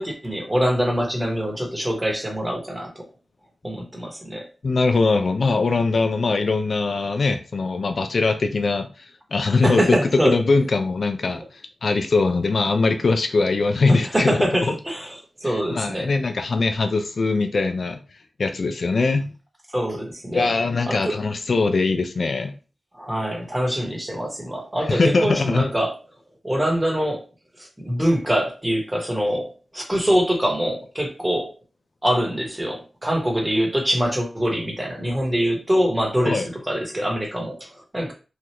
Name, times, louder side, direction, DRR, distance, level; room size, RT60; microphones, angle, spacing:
voice 1, 0.0-3.0 3.6-4.5 9.6-10.4 13.9-15.1 15.4-16.1 19.7-20.5 20.9-21.2 22.9-26.0 26.4-27.2 27.6-31.5 32.0-38.1, equal, 20° right, 1 dB, 1.1 m, -24 dB
voice 2, 4.6-8.9 9.3-10.0 10.2-11.4 11.8-14.4 15.4-18.0 18.4-19.3 20.3-22.5 24.9-25.7 36.3-36.5, left 3 dB, 70° left, 7 dB, 0.4 m, -21 dB
3.2 x 2.3 x 2.9 m, 0.34 s
cardioid pair, 65°, 0 cm